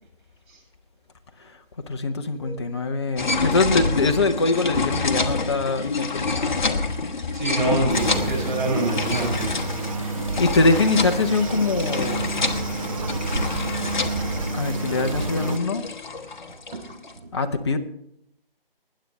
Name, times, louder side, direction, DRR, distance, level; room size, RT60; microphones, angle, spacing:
voice 1, 1.4-6.8 10.0-12.3 14.2-15.8 17.3-17.8, left 3 dB, 30° left, 6 dB, 0.7 m, -23 dB
sound 1, 3.2-17.1, left 3 dB, 50° left, 1.2 m, -28 dB
voice 2, 7.3-9.6, right 2 dB, 55° right, -1 dB, 6.4 m, -25 dB
sound 2, 7.9-15.6, right 4 dB, 35° right, 0.9 m, -29 dB
20.0 x 9.4 x 3.2 m, 0.74 s
figure-of-eight pair, 155°, 30 cm